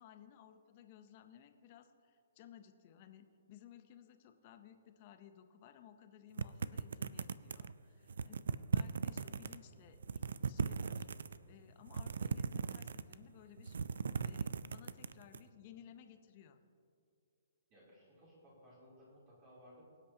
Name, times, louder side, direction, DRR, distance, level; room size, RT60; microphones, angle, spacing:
voice 1, 0.0-11.1 11.4-13.8 14.2-16.6, left 10 dB, 30° left, 8 dB, 0.6 m, -58 dB
sound 1, 6.4-7.7 8.1-9.6 9.9-11.4 11.9-13.3 13.6-15.4, right 5 dB, 75° right, 0.4 m, -37 dB
voice 2, 17.7-19.8, equal, 25° right, -6 dB, 3.0 m, -60 dB
24.0 x 8.2 x 2.8 m, 2.5 s
hypercardioid pair, 170°, 0 cm